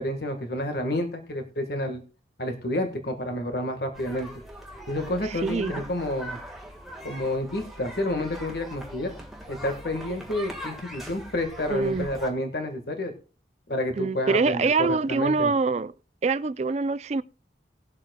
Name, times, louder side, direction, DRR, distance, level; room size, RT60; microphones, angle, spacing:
voice 1, 0.0-2.0 2.4-4.3 4.9-6.4 7.0-9.1 9.5-13.1 13.7-15.5, left 1 dB, 60° left, 1.5 m, -29 dB
sound 1, 3.9-12.3, equal, ahead, 1.5 m, -41 dB
voice 2, 5.2-5.8 11.7-12.1 14.0-15.9 16.2-17.2, right 4 dB, 40° right, 0.4 m, -25 dB
19.5 x 7.5 x 2.2 m
head